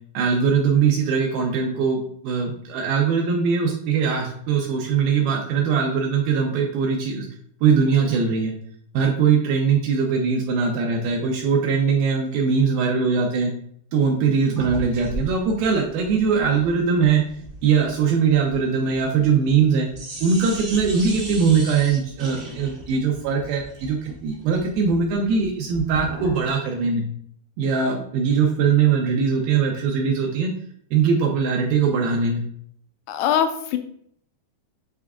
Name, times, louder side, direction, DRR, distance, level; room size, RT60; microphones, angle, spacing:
voice 1, 0.1-7.3 7.6-8.5 8.9-13.5 13.9-17.2 17.6-19.9 20.2-27.0 27.6-30.5 30.9-32.5, right 6 dB, 80° right, 1 dB, 2.2 m, -21 dB
sound 1, 14.5-19.7 19.9-26.5, right 1 dB, 60° right, 1.0 m, -37 dB
voice 2, 33.1-33.8, left 9 dB, 85° left, 7 dB, 2.6 m, -22 dB
8.4 x 3.4 x 3.6 m, 0.65 s
omnidirectional pair, 4.9 m